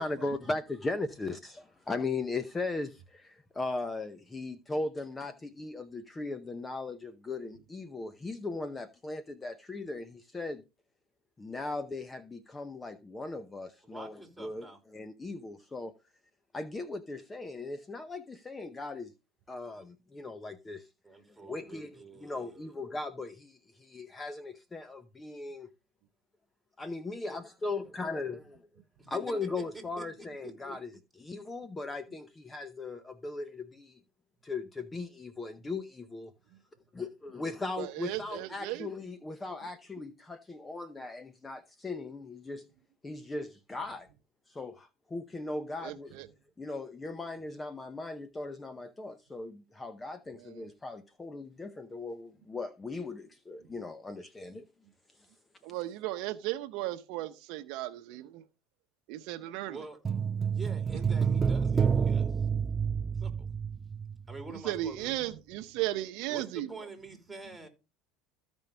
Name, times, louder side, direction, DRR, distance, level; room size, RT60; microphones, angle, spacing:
voice 1, 0.0-10.6 11.4-14.7 14.9-15.9 16.5-19.1 19.5-20.9 21.4-25.7 26.8-28.4 29.1-30.9 31.2-34.0 34.4-36.3 36.9-42.6 43.0-44.1 44.5-46.2 46.6-54.6, left 3 dB, 15° left, 0.7 m, -38 dB
voice 2, 13.8-14.8 21.0-22.7 29.0-30.1 30.4-30.5 59.6-60.0 60.5-62.4 63.2-63.5 64.3-65.1 66.3-67.7, right 3 dB, 5° right, 3.2 m, -46 dB
voice 3, 37.8-38.9 45.8-46.3 55.6-58.4 59.1-59.8 64.6-66.7, right 15 dB, 70° right, 0.8 m, -35 dB
sound 1, 60.0-64.5 64.8-64.9, right 6 dB, 25° right, 0.4 m, -29 dB
14.5 x 5.3 x 3.4 m
supercardioid pair, 105°, 0 cm